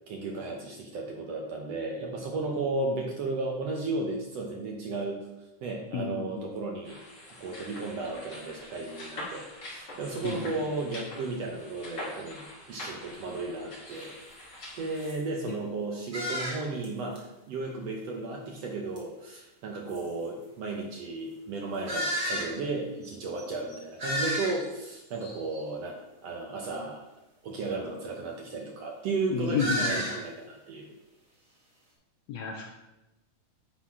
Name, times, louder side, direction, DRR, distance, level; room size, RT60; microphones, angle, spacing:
voice 1, 0.1-5.2 5.6-7.0 7.4-12.4 12.7-14.1 14.8-27.0 27.4-30.9, right 3 dB, 65° right, 0 dB, 1.7 m, -34 dB
voice 2, 5.9-6.5 10.2-10.5 29.3-30.1 32.3-32.6, left 6 dB, 75° left, 1 dB, 1.7 m, -31 dB
sound 1, 6.8-15.1, left 1 dB, 35° left, 2.9 m, -44 dB
sound 2, 13.8-14.0 14.5-14.6 15.0-15.2 16.1-16.8 17.1-17.2 18.9-19.0 19.9-20.0 21.8-22.5 23.0-23.1 23.4-23.5 23.7-24.8 25.2-25.6 29.6-30.2, equal, 30° right, 1.5 m, -32 dB
10.0 x 4.0 x 4.8 m, 0.97 s
omnidirectional pair, 3.7 m